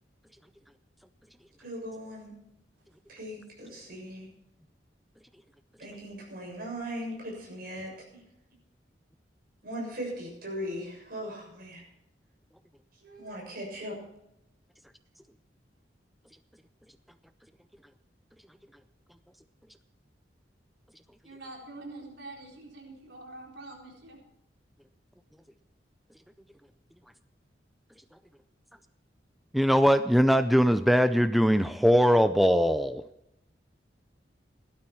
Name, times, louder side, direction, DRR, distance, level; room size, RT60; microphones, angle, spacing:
voice 1, 1.6-2.4 3.1-4.3 5.8-8.2 9.6-11.8 13.0-14.0, equal, 55° right, -1 dB, 7.0 m, -39 dB
voice 2, 21.2-24.2, right 2 dB, 85° right, -1 dB, 4.3 m, -45 dB
voice 3, 29.5-33.0, equal, ahead, 10 dB, 0.4 m, -21 dB
16.5 x 12.0 x 4.5 m, 0.82 s
head